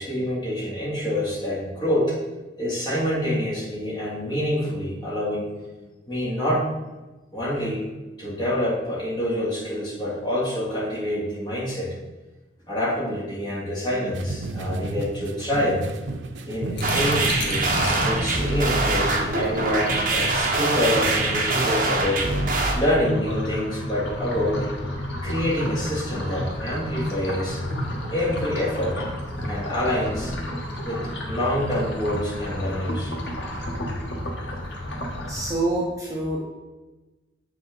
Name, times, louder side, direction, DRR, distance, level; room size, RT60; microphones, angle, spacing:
voice 1, 0.0-2.2 2.6-5.5 6.1-6.7 7.3-7.8 8.2-11.9 12.7-15.8 16.5-22.3 22.7-24.7 25.2-27.6 28.1-29.1 29.5-30.3 30.8-33.1 33.9-34.0, left 1 dB, 25° left, -7 dB, 2.9 m, -26 dB
sound 1, 14.1-21.9, right 2 dB, 80° right, 0.6 m, -35 dB
sound 2, 16.8-35.5, left 1 dB, 75° left, 1.4 m, -31 dB
sound 3, 16.8-22.7, right 3 dB, 50° right, 1.2 m, -24 dB
voice 2, 35.3-36.4, right 2 dB, 20° right, -5 dB, 1.1 m, -26 dB
7.7 x 6.0 x 4.1 m, 1.1 s
head